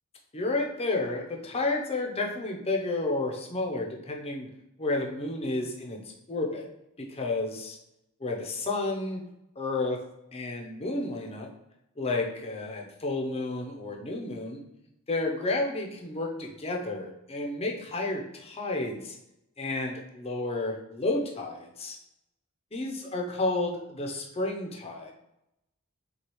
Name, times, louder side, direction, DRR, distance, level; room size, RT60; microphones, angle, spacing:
voice 1, 0.3-4.5 4.8-6.7 7.0-7.8 8.2-9.2 9.6-10.0 10.3-11.5 12.0-14.6 15.1-19.2 19.6-22.0 22.7-25.1, left 2 dB, 25° left, 1 dB, 0.6 m, -31 dB
6.2 x 2.3 x 3.0 m, 0.85 s
head